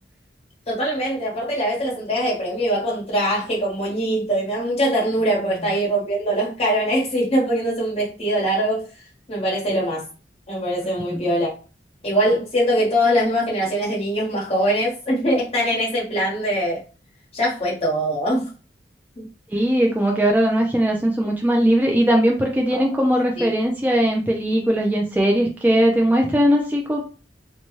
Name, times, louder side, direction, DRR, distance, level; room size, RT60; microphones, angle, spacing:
voice 1, 0.7-8.8 9.3-10.0 10.5-11.5 12.0-16.8 17.3-18.5 19.1-19.2 22.7-22.8 23.4-23.5, equal, 35° left, 1.2 m, -22 dB
voice 2, 19.5-27.0, equal, 10° right, 0.4 m, -19 dB
2.7 x 2.2 x 3.0 m
head